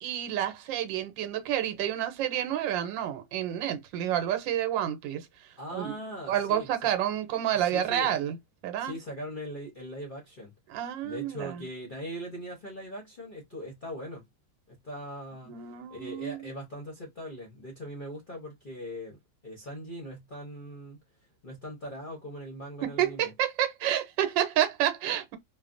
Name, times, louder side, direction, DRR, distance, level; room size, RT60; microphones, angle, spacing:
voice 1, 0.0-5.3 5.7-5.9 6.3-8.4 8.6-8.9 10.7-11.6 15.4-16.5 22.8-25.4, right 11 dB, 90° right, 1.4 m, -29 dB
voice 2, 5.6-6.9 7.5-8.2 8.8-10.5 10.8-14.3 14.7-21.0 21.4-23.3, equal, 50° left, 0.6 m, -41 dB
3.1 x 2.0 x 2.4 m
omnidirectional pair, 2.0 m